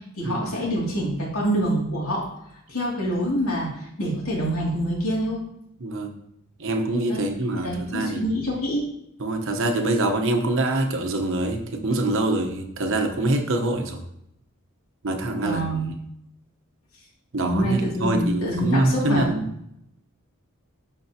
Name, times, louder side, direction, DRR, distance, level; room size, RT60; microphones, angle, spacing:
voice 1, 0.2-2.2 2.7-5.4 7.1-7.3 7.6-8.8 15.4-15.9 17.4-19.3, equal, 85° left, -4 dB, 2.6 m, -26 dB
voice 2, 5.8-6.1 6.6-8.2 9.2-14.0 15.0-15.8 17.3-19.5, right 2 dB, 65° right, 5 dB, 1.0 m, -25 dB
12.0 x 4.4 x 2.9 m, 0.77 s
head